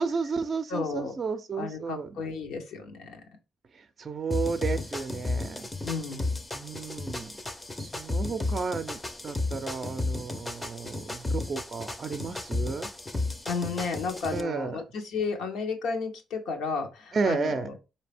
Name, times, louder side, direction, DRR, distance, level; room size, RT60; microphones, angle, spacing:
voice 1, 0.0-2.1 4.0-5.7 6.5-7.3 7.8-12.9 14.3-14.8 17.1-17.7, right 4 dB, 40° right, 0.5 m, -32 dB
voice 2, 0.7-1.1 1.6-3.2 5.8-6.3 13.4-17.7, left 4 dB, 85° left, 1.1 m, -33 dB
sound 1, 4.3-14.4, left 2 dB, 15° left, 0.6 m, -33 dB
4.2 x 2.7 x 3.4 m
cardioid pair, 90°, 0 cm